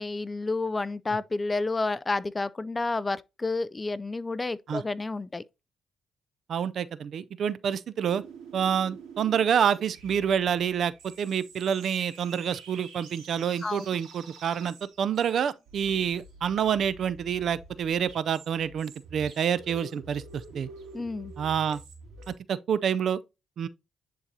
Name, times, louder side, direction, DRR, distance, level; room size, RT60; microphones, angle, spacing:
voice 1, 0.0-5.4 13.6-13.9 20.9-21.3, left 3 dB, 20° left, 0.3 m, -30 dB
voice 2, 6.5-8.2 8.5-20.7 21.4-21.8 22.3-23.2 23.6-23.7, right 8 dB, 60° right, 0.4 m, -28 dB
sound 1, 8.0-22.3, right 4 dB, 80° right, 2.3 m, -48 dB
10.0 x 3.9 x 2.7 m
cardioid pair, 90°, 0 cm